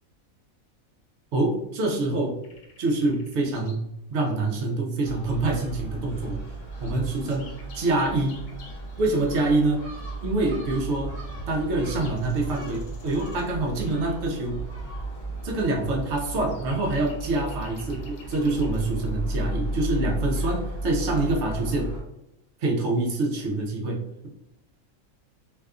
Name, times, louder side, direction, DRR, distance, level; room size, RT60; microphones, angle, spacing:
voice 1, 1.3-2.4 2.8-3.8 4.1-6.4 6.8-8.5 9.0-9.8 10.2-11.2 11.5-14.6 15.4-21.9 22.6-24.3, right 2 dB, 65° right, 0 dB, 0.8 m, -26 dB
sound 1, 2.4-3.9 4.2-4.3 5.0-5.1 5.2-5.6 6.1-6.2 6.4-8.9 9.5-18.8 19.5-19.8, right 2 dB, 90° left, 1.0 m, -46 dB
Gull seagull, 5.0-22.0, right 1 dB, 45° left, 1.2 m, -34 dB
2.7 x 2.3 x 2.3 m, 0.86 s
omnidirectional pair, 1.4 m